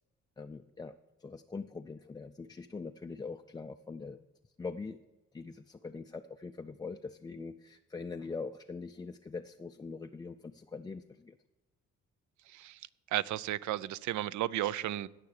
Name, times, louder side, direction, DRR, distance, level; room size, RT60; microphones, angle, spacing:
voice 1, 0.4-0.9 1.2-4.2 4.6-5.0 5.3-11.4, left 4 dB, 15° left, 5 dB, 0.3 m, -42 dB
voice 2, 13.1-15.1, right 13 dB, 75° right, 18 dB, 0.5 m, -33 dB
16.5 x 5.9 x 4.8 m, 1.1 s
cardioid pair, 90°, 30 cm